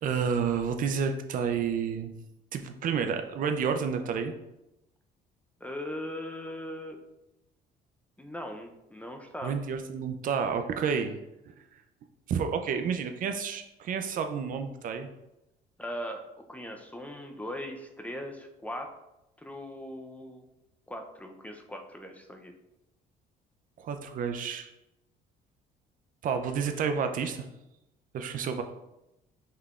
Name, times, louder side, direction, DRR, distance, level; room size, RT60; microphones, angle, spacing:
voice 1, 0.0-2.1 2.5-4.3 9.4-11.2 12.3-15.1 23.8-24.7 26.2-27.5 28.1-28.6, right 6 dB, 55° right, 7 dB, 0.4 m, -30 dB
voice 2, 5.6-7.0 8.2-9.5 15.8-16.2 16.5-18.9 19.4-20.4 20.9-22.5, left 1 dB, 10° left, 4 dB, 0.5 m, -39 dB
5.7 x 3.3 x 2.4 m, 0.91 s
cardioid pair, 110°, 17 cm